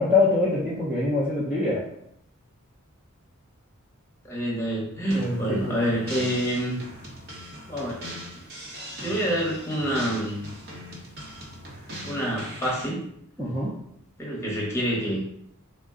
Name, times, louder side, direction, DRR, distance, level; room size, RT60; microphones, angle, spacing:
voice 1, 0.0-1.8 5.1-5.9 13.4-13.7, left 3 dB, 5° right, -8 dB, 0.5 m, -24 dB
voice 2, 4.2-6.8 7.7-8.2 9.0-10.4 12.0-13.0 14.2-15.2, equal, 10° left, -4 dB, 0.9 m, -27 dB
sound 1, 5.1-12.9, equal, 50° right, 0.9 m, -40 dB
3.5 x 2.1 x 3.6 m, 0.72 s
head